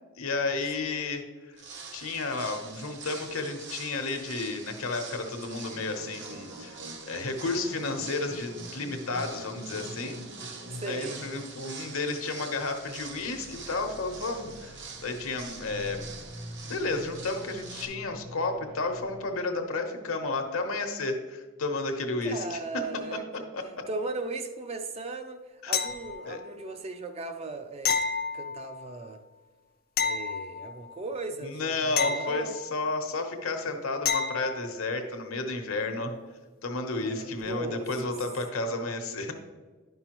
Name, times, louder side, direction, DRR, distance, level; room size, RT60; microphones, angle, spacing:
voice 1, 0.2-1.6 1.9-6.8 7.1-10.2 10.9-16.0 16.6-22.8 23.1-23.2 23.5-23.6 25.6-25.7 26.2-26.4 31.4-36.1 36.6-39.3, left 3 dB, 70° left, 1.0 m, -32 dB
sound 1, 1.5-17.8, right 5 dB, 55° right, 0.8 m, -45 dB
sound 2, 5.6-19.4, equal, 80° right, 1.3 m, -46 dB
voice 2, 10.5-11.3 22.2-23.5 23.9-25.4 25.7-28.0 28.3-29.2 30.0-32.6 36.9-37.9 38.5-38.8, right 3 dB, 30° right, 0.4 m, -37 dB
sound 3, 25.7-26.5 27.8-28.9 30.0-31.0 32.0-33.0 34.1-34.7 37.4-37.5, left 6 dB, 45° left, 0.5 m, -30 dB
11.0 x 5.4 x 3.0 m
head